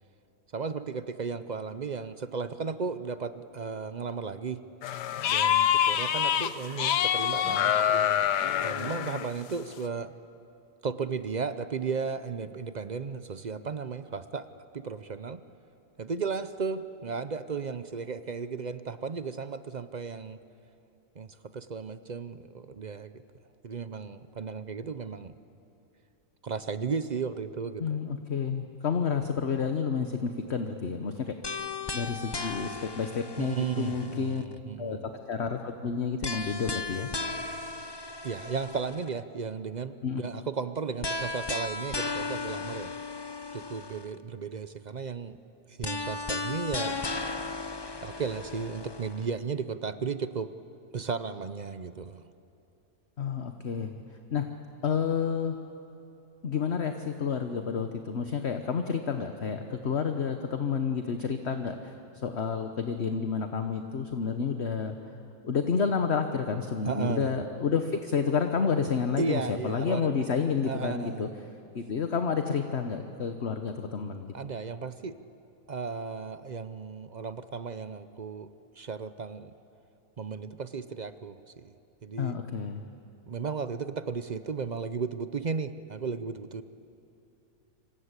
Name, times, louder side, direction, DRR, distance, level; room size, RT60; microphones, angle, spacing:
voice 1, 0.5-4.6 5.3-8.3 8.6-10.1 10.8-14.5 14.7-15.4 16.0-20.4 21.2-21.3 21.5-23.2 23.6-25.4 26.4-28.0 33.4-35.0 38.2-42.9 43.5-45.4 45.7-47.0 48.0-50.5 50.9-52.2 66.8-67.4 69.2-70.1 70.7-71.3 74.3-75.2 75.7-79.5 80.2-81.7 82.0-82.4 83.3-86.6, right 5 dB, 55° right, 12 dB, 0.4 m, -35 dB
sound 1, 4.8-6.5 6.8-9.3, left 10 dB, 80° left, 1.5 m, -26 dB
voice 2, 27.8-31.3 31.9-34.4 34.8-37.1 40.0-40.2 53.2-54.0 54.3-54.5 54.8-55.6 56.4-61.9 62.2-65.0 65.4-71.3 71.7-74.3 82.2-82.8, left 6 dB, 45° left, 6 dB, 1.3 m, -30 dB
sound 2, 31.4-34.6 36.2-39.2 41.0-44.2 45.8-49.3, left 3 dB, 25° left, 0.5 m, -36 dB
26.5 x 26.5 x 8.2 m, 2.8 s
omnidirectional pair, 1.7 m